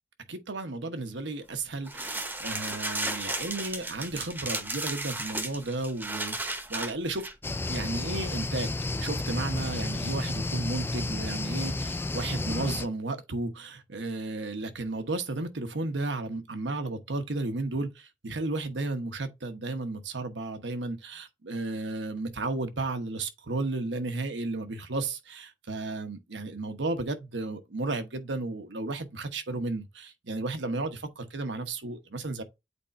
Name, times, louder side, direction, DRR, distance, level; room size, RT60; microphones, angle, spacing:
voice 1, 0.3-7.3 7.7-32.4, right 2 dB, 85° right, 1.1 m, -33 dB
sound 1, 1.9-7.3, right 2 dB, 10° right, 0.8 m, -34 dB
sound 2, 7.4-12.9, left 2 dB, 15° left, 0.3 m, -32 dB
8.3 x 4.4 x 2.6 m
head